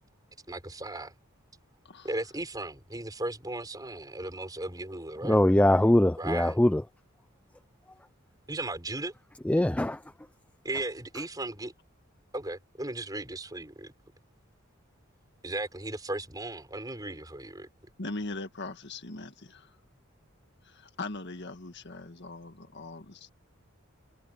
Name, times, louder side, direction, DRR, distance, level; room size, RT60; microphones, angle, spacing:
voice 1, 0.5-1.1 2.0-5.4 6.2-6.6 8.5-9.1 10.6-11.7 12.3-13.9 15.4-17.7, right 2 dB, 20° right, 4.6 m, -36 dB
voice 2, 5.2-6.8 9.5-10.0, left 1 dB, 5° left, 0.4 m, -22 dB
voice 3, 18.0-19.7 20.6-23.3, left 2 dB, 55° left, 1.9 m, -40 dB
head